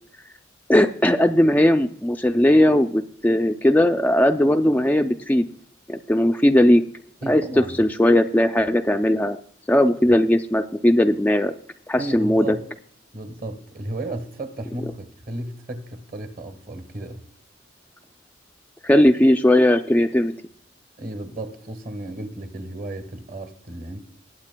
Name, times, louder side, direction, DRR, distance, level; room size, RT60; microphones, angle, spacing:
voice 1, 0.7-5.5 5.9-6.8 7.3-7.4 7.8-9.4 9.7-11.5 11.9-12.6 18.8-20.3, left 1 dB, 10° left, 0.3 m, -18 dB
voice 2, 7.2-7.8 12.0-12.7 13.1-17.2 21.0-24.0, right 1 dB, 45° right, 1.3 m, -34 dB
19.0 x 8.9 x 2.2 m
head